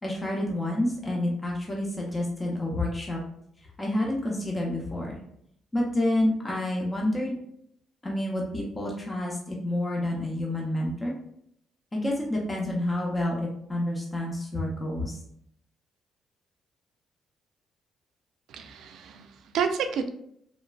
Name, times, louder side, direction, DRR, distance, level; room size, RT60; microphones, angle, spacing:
voice 1, 0.0-3.2 3.8-5.2 5.7-7.4 8.0-11.1 11.9-15.2, left 1 dB, 20° left, -2 dB, 0.6 m, -29 dB
voice 2, 18.5-20.1, right 6 dB, 80° right, 7 dB, 0.3 m, -30 dB
3.1 x 2.2 x 2.2 m, 0.71 s
cardioid pair, 90°, 0 cm